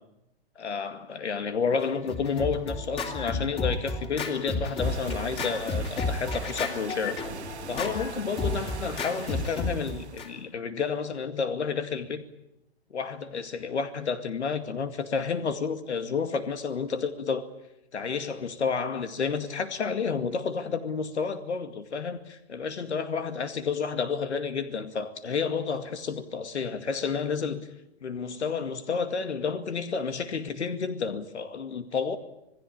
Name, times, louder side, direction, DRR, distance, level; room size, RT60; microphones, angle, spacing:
voice 1, 0.6-7.2 7.7-12.2 12.9-17.5 17.9-27.7 28.0-32.2, left 5 dB, 85° left, 2.3 m, -30 dB
Scratching (performance technique), 1.8-10.3, left 3 dB, 15° left, 2.7 m, -32 dB
sound 1, 4.8-10.4, right 7 dB, 80° right, 2.0 m, -42 dB
27.5 x 19.0 x 8.7 m
hypercardioid pair, 145°, 33 cm